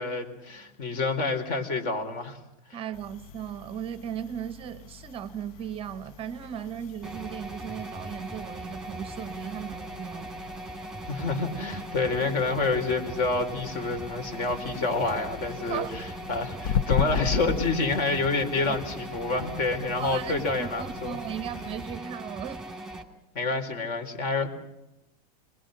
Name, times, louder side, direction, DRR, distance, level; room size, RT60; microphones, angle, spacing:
voice 1, 0.0-2.4 2.7-2.8 11.1-21.2 23.3-24.5, left 3 dB, 45° left, 4.0 m, -28 dB
voice 2, 2.7-10.4 15.7-15.9 17.0-17.1 18.7-18.8 20.0-22.6, right 9 dB, 30° right, 0.8 m, -37 dB
sound 1, 2.9-22.0, left 7 dB, 60° left, 0.8 m, -38 dB
sound 2, 7.0-23.0, right 2 dB, 5° right, 2.4 m, -39 dB
26.0 x 21.0 x 6.5 m
supercardioid pair, 145°, 20 cm